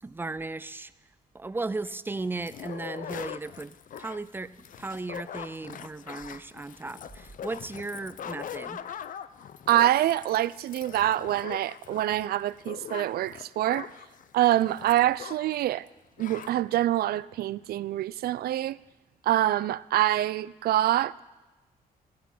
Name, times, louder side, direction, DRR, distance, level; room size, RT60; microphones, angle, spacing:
voice 1, 0.0-0.9 1.3-4.5 4.8-8.8, right 3 dB, 15° right, 0.5 m, -36 dB
sound 1, 2.4-15.6 15.9-16.0 16.2-16.5, left 9 dB, 55° left, 0.6 m, -42 dB
voice 2, 9.7-13.9 14.3-15.9 16.2-18.8 19.2-21.2, right 13 dB, 75° right, 0.4 m, -25 dB
15.5 x 11.5 x 5.6 m
cardioid pair, 110°, 16 cm